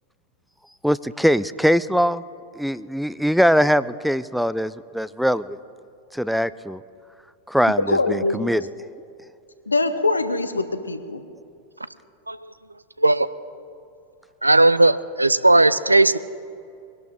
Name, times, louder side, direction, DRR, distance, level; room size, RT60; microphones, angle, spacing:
voice 1, 0.8-2.2 2.5-5.6 6.1-6.8 7.5-8.6, equal, ahead, 16 dB, 0.4 m, -21 dB
voice 2, 7.8-8.5 9.7-11.2, left 2 dB, 80° left, 10 dB, 1.0 m, -23 dB
voice 3, 14.4-16.2, right 2 dB, 85° right, 15 dB, 0.4 m, -16 dB
23.0 x 12.0 x 3.7 m, 2.5 s
figure-of-eight pair, 90°, 0 cm